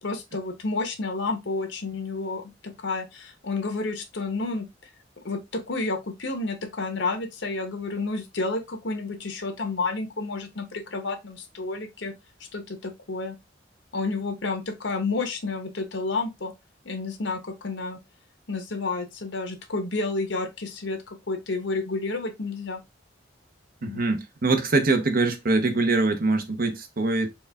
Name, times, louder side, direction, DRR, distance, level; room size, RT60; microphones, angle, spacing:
voice 1, 0.0-4.7 5.2-12.1 12.5-13.4 13.9-16.5 16.8-18.0 18.5-22.8 23.8-24.0, left 3 dB, 70° left, 1.0 m, -30 dB
voice 2, 23.8-27.3, right 3 dB, 50° right, 0.8 m, -23 dB
4.4 x 2.4 x 3.4 m
head